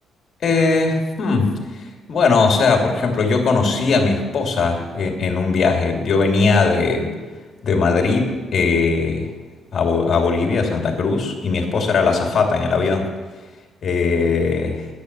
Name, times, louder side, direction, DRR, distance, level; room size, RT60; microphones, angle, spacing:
voice 1, 0.4-1.5 2.1-7.1 7.6-9.3 9.7-13.1 13.8-14.8, left 4 dB, 55° left, 2 dB, 2.7 m, -19 dB
10.5 x 8.8 x 8.2 m, 1.4 s
cardioid pair, 90°, 0 cm